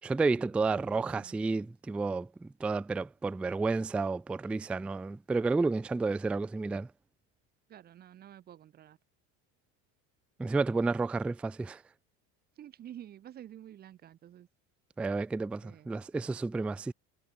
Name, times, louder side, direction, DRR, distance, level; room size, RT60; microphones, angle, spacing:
voice 1, 0.0-6.9 10.4-11.8 15.0-16.9, right 3 dB, 5° right, 0.3 m, -31 dB
voice 2, 0.7-1.6 7.7-9.0 12.6-14.5 15.6-15.9 16.2-16.4, right 11 dB, 25° right, 1.2 m, -50 dB
cardioid pair, 175°, 34 cm